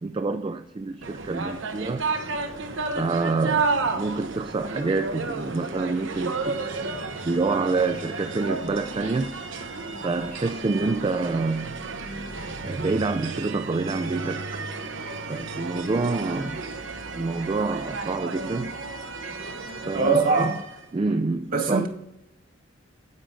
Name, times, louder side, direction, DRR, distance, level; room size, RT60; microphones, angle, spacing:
voice 1, 0.0-2.0 2.9-9.4 10.0-11.8 12.6-14.6 15.3-16.6 17.2-18.7 19.9-20.6 20.9-21.9, right 3 dB, 25° right, 0.4 m, -27 dB
sound 1, 1.0-20.8, right 3 dB, 75° right, 1.1 m, -32 dB
voice 2, 19.9-20.5 21.5-21.9, right 4 dB, 50° right, 1.9 m, -22 dB
9.6 x 8.7 x 3.7 m
head